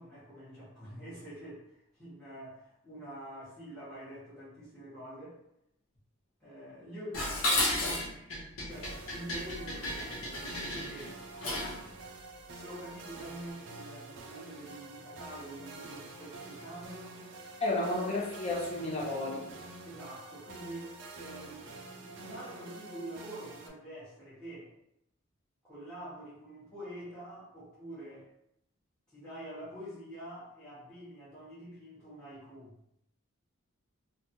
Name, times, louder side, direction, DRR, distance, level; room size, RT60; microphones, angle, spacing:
voice 1, 0.0-5.4 6.4-7.3 7.6-8.1 8.6-11.1 12.5-17.2 19.8-21.7 22.0-24.7 25.6-28.3 29.1-32.8, right 1 dB, 5° left, -12 dB, 1.0 m, -46 dB
Dishes pots and pans, 7.1-11.8, left 1 dB, 75° left, 0.9 m, -33 dB
sound 1, 8.7-23.7, right 2 dB, 55° right, 0.4 m, -47 dB
voice 2, 17.6-19.5, left 2 dB, 30° left, -4 dB, 0.7 m, -32 dB
3.2 x 2.3 x 2.8 m, 0.78 s
head